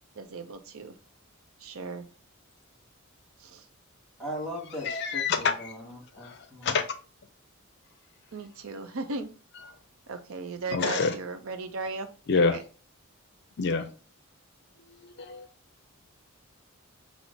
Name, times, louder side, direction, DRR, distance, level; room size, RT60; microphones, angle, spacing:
voice 1, 0.2-0.9 1.6-2.0 3.4-3.7 8.3-9.3 10.1-12.1, right 3 dB, 75° right, 8 dB, 0.6 m, -36 dB
voice 2, 4.2-6.8, equal, ahead, -3 dB, 1.7 m, -39 dB
voice 3, 4.8-5.5 6.2-6.8 10.7-11.1 12.3-12.6 13.6-13.9 15.2-15.5, left 4 dB, 50° left, 9 dB, 0.4 m, -26 dB
6.0 x 2.0 x 3.9 m, 0.38 s
head